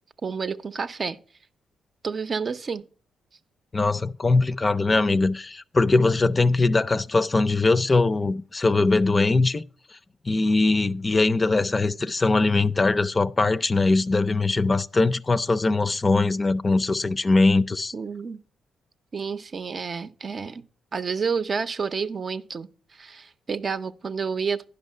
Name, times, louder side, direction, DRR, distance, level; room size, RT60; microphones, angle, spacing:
voice 1, 0.2-1.2 2.0-2.9 17.9-18.4 19.1-20.6 20.9-24.6, right 5 dB, 50° right, 0.6 m, -30 dB
voice 2, 3.7-9.6 10.3-17.9, left 3 dB, 30° left, 0.5 m, -21 dB
10.5 x 5.5 x 5.5 m
supercardioid pair, 55°, 0 cm